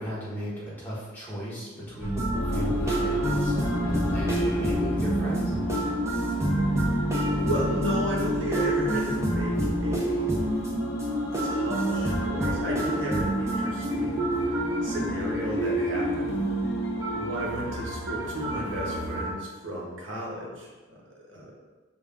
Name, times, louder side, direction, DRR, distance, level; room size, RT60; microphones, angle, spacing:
voice 1, 0.0-5.5, equal, 10° left, -8 dB, 1.2 m, -35 dB
sound 1, 2.0-19.3, right 1 dB, 15° right, 0.6 m, -28 dB
sound 2, 2.3-19.2, right 1 dB, 65° left, 0.7 m, -35 dB
voice 2, 7.2-10.3 11.4-14.3 14.8-16.4 17.1-20.7 21.3-21.5, equal, 70° right, -4 dB, 1.1 m, -33 dB
5.4 x 2.5 x 3.5 m, 1.3 s
head